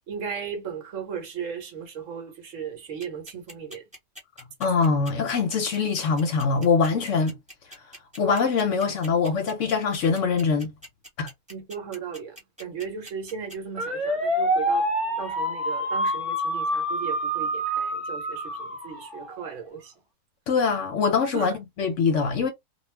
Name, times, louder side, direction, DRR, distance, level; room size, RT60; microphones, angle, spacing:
voice 1, 0.1-3.8 11.5-14.9 15.2-19.9 21.3-21.6, right 7 dB, 60° right, 1.0 m, -36 dB
sound 1, 3.0-19.5, right 1 dB, 5° right, 1.0 m, -28 dB
voice 2, 4.6-7.4 8.2-10.7 11.2-11.3 20.5-22.5, left 5 dB, 65° left, 0.8 m, -23 dB
2.3 x 2.3 x 3.1 m
omnidirectional pair, 1.6 m